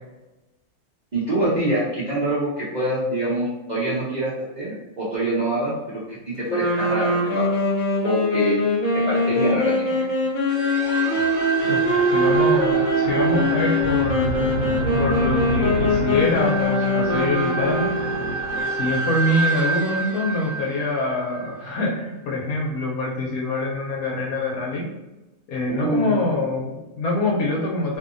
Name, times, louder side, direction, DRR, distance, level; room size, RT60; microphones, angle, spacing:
voice 1, 1.1-7.6 8.0-8.6 8.9-10.1 25.7-26.3, right 1 dB, 40° right, -10 dB, 0.6 m, -25 dB
sound 1, 6.5-18.3, left 1 dB, 55° left, 0.5 m, -22 dB
sound 2, 10.5-21.7, right 2 dB, 80° right, 1.1 m, -27 dB
voice 2, 11.7-14.3 15.0-17.9 18.7-24.9 25.5-28.0, left 2 dB, 75° left, -1 dB, 1.1 m, -25 dB
2.7 x 2.6 x 2.5 m, 1.1 s
omnidirectional pair, 1.6 m